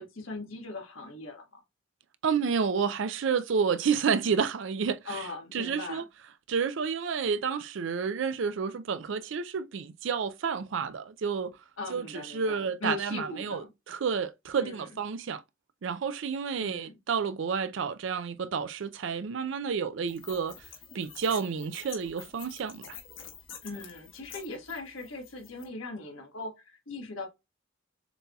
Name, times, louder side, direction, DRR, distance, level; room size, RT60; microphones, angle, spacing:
voice 1, 0.0-1.6 5.0-6.1 11.8-13.7 14.6-14.9 16.6-17.0 23.6-27.3, left 2 dB, 90° left, 1.5 m, -39 dB
voice 2, 2.2-5.2 5.5-6.0 6.5-11.6 11.9-15.4 15.8-20.6 20.9-23.0, right 6 dB, 65° right, 0.4 m, -30 dB
sound 1, 20.1-25.6, left 8 dB, 70° left, 1.3 m, -48 dB
6.8 x 2.7 x 2.3 m
head